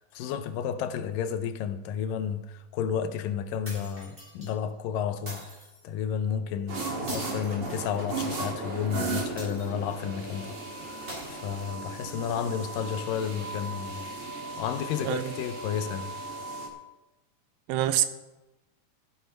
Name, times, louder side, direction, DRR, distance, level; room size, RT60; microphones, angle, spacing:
voice 1, 0.0-5.4 5.8-14.1 14.6-16.1, left 8 dB, 80° left, 2.4 m, -32 dB
sound 1, 3.6-4.5 5.3-5.8 7.1-8.3 9.4-10.0 11.1-12.0, equal, 15° right, 4.8 m, -43 dB
sound 2, 6.7-16.7, right 3 dB, 35° right, 2.5 m, -36 dB
voice 2, 15.0-15.3 17.7-18.1, right 12 dB, 85° right, 2.6 m, -26 dB
14.0 x 9.8 x 5.2 m
omnidirectional pair, 4.0 m